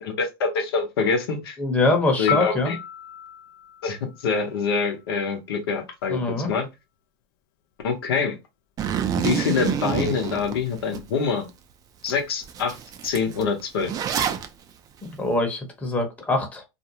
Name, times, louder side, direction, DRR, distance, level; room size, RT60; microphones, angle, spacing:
voice 1, 0.0-1.6 2.2-2.8 3.8-6.7 7.8-8.4 9.2-11.5 12.0-12.8 13.0-13.9, left 5 dB, 85° left, 0.7 m, -25 dB
voice 2, 1.6-2.7 6.1-6.5 15.1-16.6, left 2 dB, 10° left, 0.8 m, -23 dB
Piano, 2.3-5.2 13.4-13.6, left 8 dB, 55° left, 0.4 m, -34 dB
Zipper (clothing), 8.8-11.0 11.5-11.6 12.1-12.2 12.4-14.5, right 8 dB, 30° right, 0.4 m, -27 dB
2.5 x 2.1 x 2.8 m
supercardioid pair, 120°, 12 cm